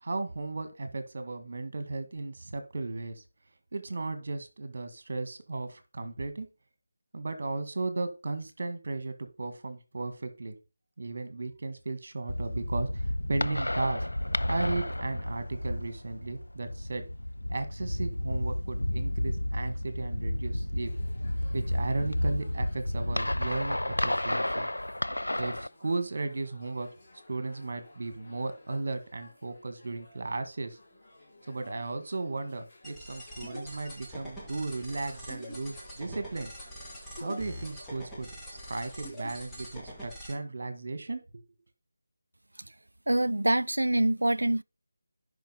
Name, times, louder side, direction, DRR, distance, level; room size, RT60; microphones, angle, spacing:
voice 1, 0.0-3.2 3.7-6.5 7.1-10.6 11.0-14.1 14.5-17.0 17.5-20.9 21.5-24.7 25.3-26.9 27.3-30.8 31.5-36.5 37.2-38.3 38.7-41.4, right 3 dB, 50° right, 1.9 m, -35 dB
sound 1, 12.3-25.7, left 1 dB, 85° left, 0.4 m, -31 dB
sound 2, 20.8-40.1, left 2 dB, 30° left, 4.1 m, -57 dB
sound 3, 32.8-40.3, equal, 5° left, 2.0 m, -44 dB
voice 2, 43.1-44.6, right 1 dB, 75° right, 0.4 m, -25 dB
10.5 x 5.6 x 5.4 m
figure-of-eight pair, 160°, 0 cm